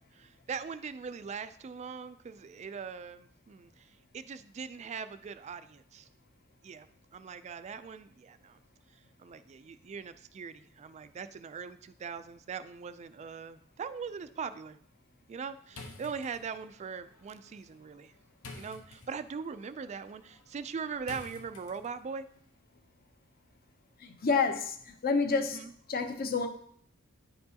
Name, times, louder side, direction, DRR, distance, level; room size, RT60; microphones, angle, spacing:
voice 1, 0.1-6.1 6.6-6.9 7.1-8.6 9.2-14.8 15.3-18.1 18.5-22.3 25.3-25.7, right 5 dB, 30° right, 12 dB, 0.3 m, -41 dB
sound 1, 15.7-22.2, left 3 dB, 80° left, 1.0 m, -51 dB
voice 2, 24.0-25.6 25.9-26.5, left 4 dB, 45° left, 6 dB, 0.7 m, -29 dB
10.0 x 4.5 x 2.8 m, 0.63 s
head